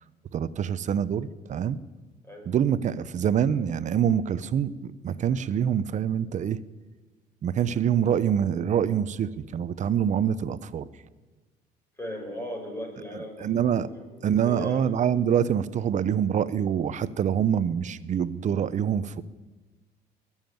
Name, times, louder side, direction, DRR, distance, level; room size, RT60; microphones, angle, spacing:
voice 1, 0.3-1.8 2.5-6.6 7.4-10.9 13.1-13.9 14.2-19.2, right 8 dB, 45° right, 16 dB, 0.7 m, -25 dB
voice 2, 12.0-14.9, equal, 15° left, 1 dB, 5.2 m, -38 dB
21.0 x 7.3 x 9.3 m, 1.2 s
cardioid pair, 110°, 17 cm